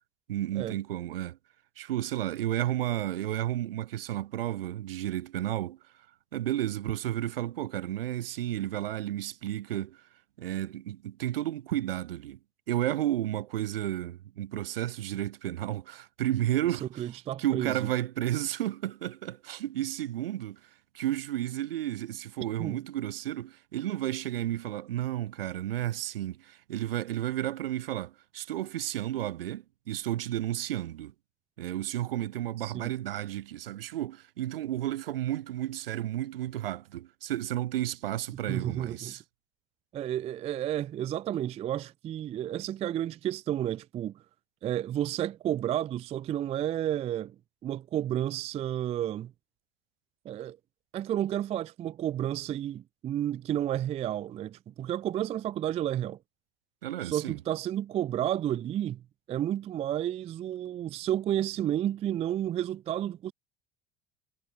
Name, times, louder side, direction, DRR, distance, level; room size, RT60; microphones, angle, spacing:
voice 1, 0.3-1.4 1.8-5.8 6.3-10.0 10.4-12.4 12.7-17.0 17.4-20.6 20.9-31.1 31.6-39.2 56.8-57.4, right 13 dB, 70° right, 1.5 m, -32 dB
voice 2, 16.8-17.8 22.6-22.8 32.6-32.9 38.5-39.1 39.9-44.2 44.6-47.4 47.6-49.3 50.3-50.6 50.9-56.2 57.0-59.0 59.3-63.3, right 11 dB, 20° right, 0.3 m, -31 dB
figure-of-eight pair, 65°, 30 cm